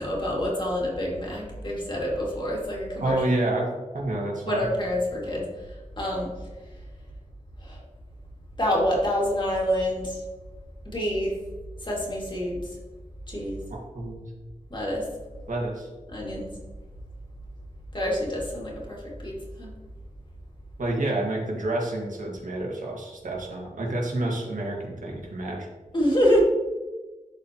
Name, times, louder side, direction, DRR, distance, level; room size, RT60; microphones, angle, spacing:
voice 1, 0.0-3.2 4.5-5.5 6.0-6.3 7.6-7.8 8.6-10.2 10.9-11.4 11.8-12.6 13.3-13.6 14.7-15.1 16.1-16.5 17.9-19.7 25.9-26.4, equal, 35° left, -3 dB, 2.2 m, -27 dB
voice 2, 3.0-4.7 13.7-14.3 15.5-15.9 20.8-25.7, right 1 dB, 85° right, -1 dB, 1.7 m, -29 dB
12.0 x 4.3 x 2.9 m, 1.2 s
wide cardioid pair, 105°, 13 cm